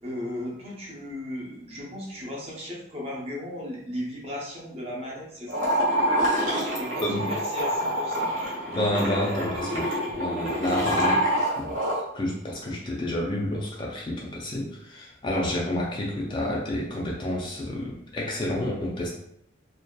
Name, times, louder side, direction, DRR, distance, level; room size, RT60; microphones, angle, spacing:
voice 1, 0.0-5.7 6.4-8.3, left 1 dB, 30° right, -3 dB, 0.6 m, -36 dB
sound 1, 5.5-12.0, equal, 85° right, 1.0 m, -26 dB
voice 2, 8.7-11.2 11.7-19.1, left 1 dB, 25° left, -3 dB, 0.3 m, -29 dB
2.6 x 2.2 x 2.2 m, 0.76 s
head